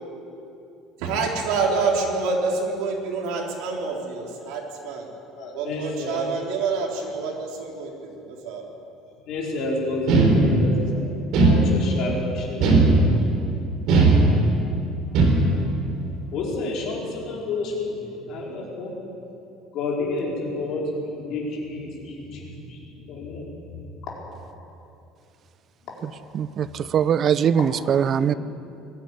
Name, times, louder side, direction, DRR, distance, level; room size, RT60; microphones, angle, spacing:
voice 1, 1.0-5.1 5.5-8.7, right 4 dB, 70° right, -1 dB, 3.9 m, -27 dB
voice 2, 5.3-6.4 9.3-11.1 11.4-12.7 16.3-18.9 19.7-23.7 24.0-24.1 26.8-26.9 27.6-27.7 28.0-28.4, left 2 dB, 45° left, -3 dB, 4.6 m, -30 dB
sound 1, 10.1-10.8 11.3-12.1 12.6-13.4 13.9-14.7 15.1-15.7, right 2 dB, 50° right, 4.1 m, -17 dB
voice 3, 26.3-28.3, right 8 dB, 30° right, 15 dB, 0.5 m, -21 dB
20.5 x 12.5 x 9.9 m, 2.7 s
cardioid pair, 180°, 0 cm